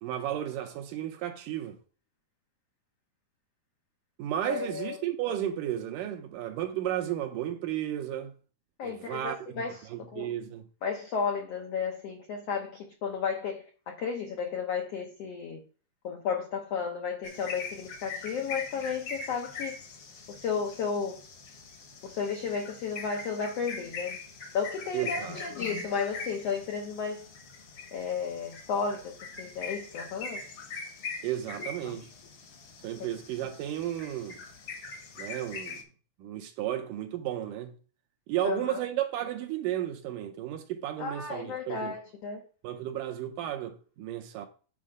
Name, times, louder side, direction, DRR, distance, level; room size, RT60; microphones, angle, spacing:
voice 1, 0.0-1.8 4.2-8.3 8.8-10.6 24.9-25.4 31.2-32.1 32.8-34.4 35.2-35.8 36.2-37.8 38.3-41.9 42.6-44.5, right 12 dB, 75° right, 2.1 m, -33 dB
voice 2, 4.4-5.0 8.8-9.8 10.1-10.3 10.8-15.6 16.0-19.8 20.3-21.2 22.0-24.2 24.5-27.2 27.9-30.4 31.8-32.0 38.4-38.8 41.0-42.4, left 6 dB, 80° left, 1.4 m, -33 dB
sound 1, 17.2-35.8, left 4 dB, 60° left, 1.5 m, -42 dB
8.6 x 4.3 x 5.0 m
omnidirectional pair, 4.2 m